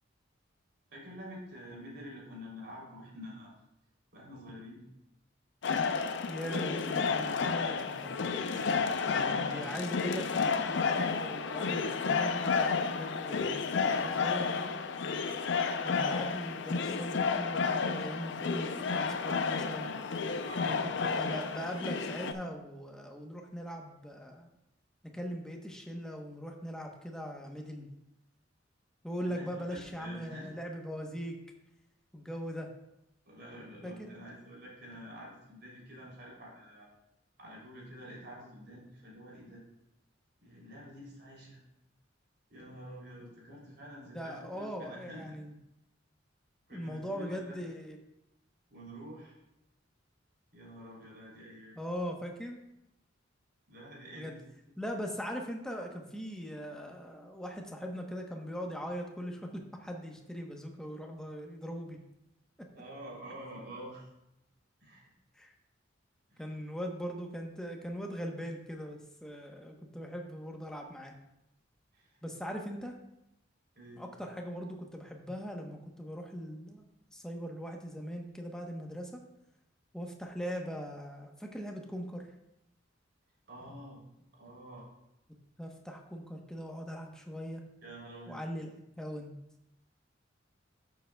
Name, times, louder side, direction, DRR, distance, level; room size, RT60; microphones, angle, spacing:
voice 1, 0.9-3.5 4.1-4.8 8.4-9.7 19.7-19.9 20.4-21.0 29.2-30.5 33.2-36.9 37.4-39.6 40.4-41.6 42.5-45.4 46.7-47.6 48.7-49.4 50.5-51.8 53.7-54.4 62.7-64.1 64.8-65.1 66.3-66.6 71.9-72.2 73.7-74.0 83.5-84.0 84.3-84.9 87.8-88.4, equal, 60° right, -4 dB, 3.2 m, -48 dB
sound 1, 5.6-22.3, left 5 dB, 65° left, 0.5 m, -31 dB
voice 2, 6.3-8.1 9.0-14.7 15.8-19.9 20.5-24.5 25.1-27.9 29.0-31.3 32.1-32.7 33.8-34.1 44.1-45.5 46.7-48.0 51.8-52.6 54.1-54.3 54.8-62.0 65.4-65.5 66.4-71.1 72.2-72.9 74.0-76.8 77.1-79.2 79.9-82.2 85.6-87.6 88.3-88.7 89.0-89.3, equal, 5° left, 1 dB, 0.9 m, -40 dB
12.5 x 7.0 x 2.3 m, 0.85 s
head